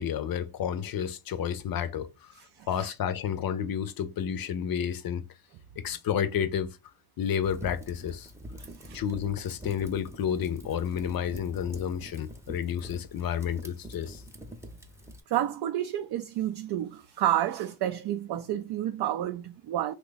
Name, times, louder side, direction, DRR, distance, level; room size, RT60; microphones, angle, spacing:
voice 1, 0.0-2.3 2.7-5.2 5.8-6.8 7.2-8.3 8.9-14.2, left 8 dB, 45° left, 0.6 m, -31 dB
voice 2, 2.4-2.9 8.6-9.0 15.3-19.9, right 12 dB, 50° right, 0.5 m, -30 dB
Fire, 7.4-15.2, equal, 5° right, 0.7 m, -45 dB
3.0 x 2.3 x 3.9 m
supercardioid pair, 60°, 50 cm